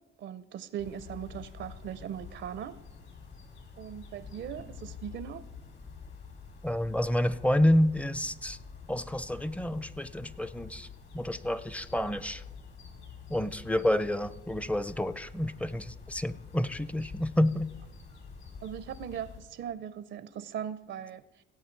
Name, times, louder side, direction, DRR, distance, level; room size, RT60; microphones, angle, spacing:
voice 1, 0.2-2.8 3.8-5.5 18.6-21.4, right 9 dB, 70° right, 0.6 m, -39 dB
sound 1, 0.8-19.4, left 5 dB, 60° left, 3.2 m, -47 dB
voice 2, 6.6-8.6 8.9-10.9 11.1-12.4 13.3-17.7, left 1 dB, 5° left, 0.5 m, -29 dB
17.5 x 8.1 x 4.5 m
cardioid pair, 90°, 20 cm